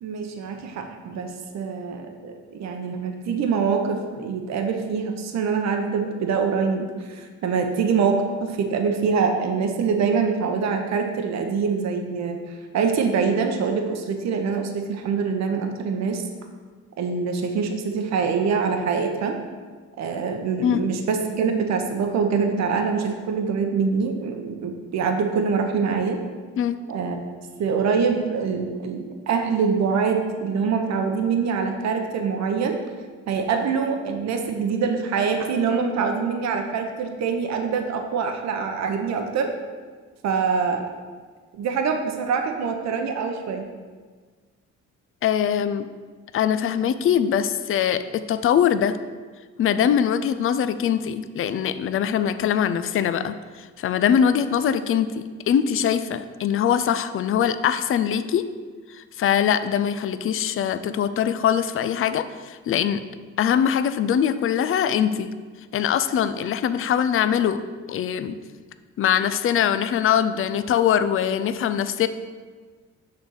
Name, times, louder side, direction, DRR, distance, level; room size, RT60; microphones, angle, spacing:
voice 1, 0.0-12.4 12.7-16.2 17.0-19.3 20.0-26.2 26.9-27.2 27.6-32.8 33.3-39.5 40.2-40.9 41.5-43.6 54.5-54.6, right 5 dB, 60° right, 4 dB, 0.8 m, -24 dB
voice 2, 45.2-45.9 46.3-49.0 49.6-58.5 58.9-63.0 63.4-65.3 65.7-67.6 67.9-68.4 69.0-72.1, left 9 dB, 45° left, 12 dB, 0.4 m, -22 dB
6.6 x 3.5 x 6.2 m, 1.5 s
cardioid pair, 90°, 30 cm